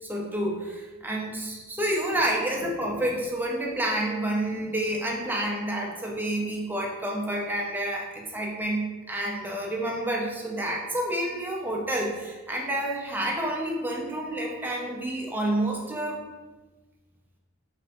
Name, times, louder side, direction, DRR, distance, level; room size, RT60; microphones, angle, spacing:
voice 1, 0.0-16.2, right 1 dB, 10° right, -1 dB, 0.5 m, -29 dB
4.7 x 3.3 x 2.6 m, 1.3 s
head